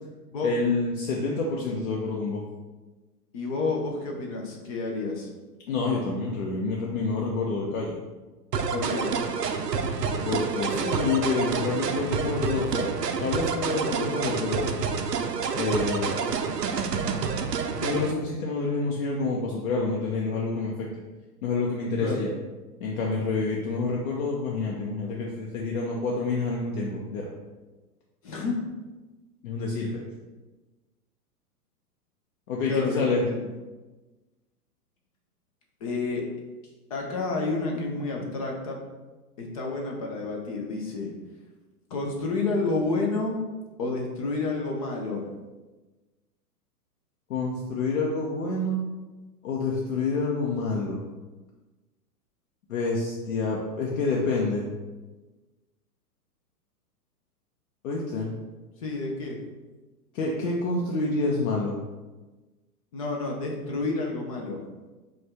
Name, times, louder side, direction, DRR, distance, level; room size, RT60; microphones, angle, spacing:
voice 1, 0.4-2.4 5.7-8.0 10.2-12.9 13.2-14.7 15.6-16.3 17.8-20.9 21.4-22.3 22.8-27.3 29.4-30.0 32.5-33.2 47.3-48.8 49.4-51.0 52.7-54.7 57.8-58.3 60.1-61.7, left 3 dB, 60° left, -2 dB, 0.8 m, -28 dB
voice 2, 3.3-5.3 8.7-9.1 22.0-22.1 28.2-28.6 32.6-33.4 35.8-36.2 36.9-38.8 39.4-41.1 41.9-43.4 43.8-45.3 58.8-59.4 62.9-64.6, left 3 dB, 25° left, 0 dB, 0.4 m, -30 dB
sound 1, 8.5-18.1, right 5 dB, 85° right, 0.5 m, -28 dB
5.0 x 2.4 x 3.4 m, 1.2 s
figure-of-eight pair, 105°, 48 cm